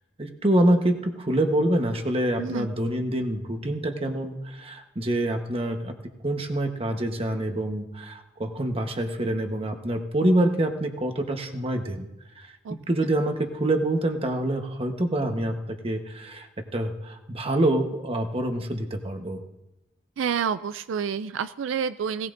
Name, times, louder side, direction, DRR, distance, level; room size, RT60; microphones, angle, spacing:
voice 1, 0.2-12.1 12.4-12.5 12.9-19.4, right 1 dB, 30° right, 4 dB, 1.2 m, -26 dB
voice 2, 2.4-2.7 12.6-12.8 20.2-22.3, right 7 dB, 85° right, 13 dB, 0.4 m, -28 dB
18.0 x 17.5 x 2.6 m, 0.99 s
head